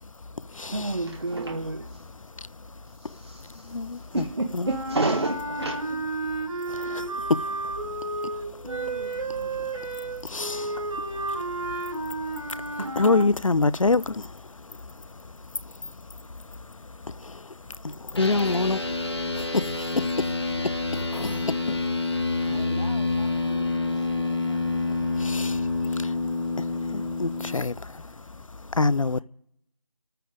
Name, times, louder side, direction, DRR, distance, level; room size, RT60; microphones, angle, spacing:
voice 1, 0.7-2.1 3.0-6.0 7.2-7.3 8.6-9.7 12.8-12.9, right 2 dB, 50° right, 1.1 m, -31 dB
voice 2, 2.4-2.7 3.0-4.3 4.5-4.7 6.7-22.2 25.2-29.2, left 3 dB, 70° left, 0.6 m, -30 dB
sound 1, 4.6-13.3, right 2 dB, 65° right, 3.2 m, -32 dB
sound 2, 18.2-27.5, left 3 dB, 50° left, 1.7 m, -28 dB
voice 3, 22.4-25.2 29.1-29.2, equal, 10° right, 0.9 m, -44 dB
26.0 x 9.2 x 5.0 m
figure-of-eight pair, 175°, 18 cm